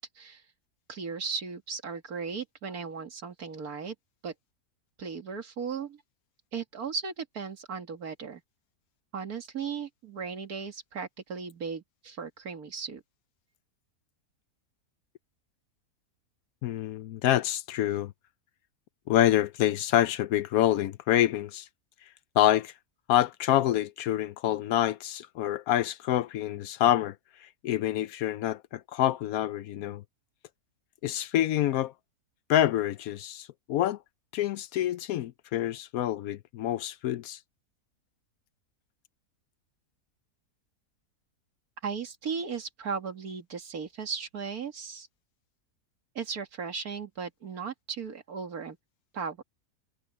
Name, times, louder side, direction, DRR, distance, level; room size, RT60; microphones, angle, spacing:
voice 1, 0.9-4.0 4.2-4.3 5.0-6.0 6.5-8.4 9.1-13.0 41.8-45.1 46.2-48.8 49.1-49.4, right 5 dB, 70° right, 2.3 m, -36 dB
voice 2, 16.6-18.1 19.1-21.7 22.4-22.7 23.1-27.1 27.4-30.0 31.0-31.9 32.5-34.0 34.3-37.4, left 12 dB, 70° left, 1.0 m, -27 dB
omnidirectional pair, 1.7 m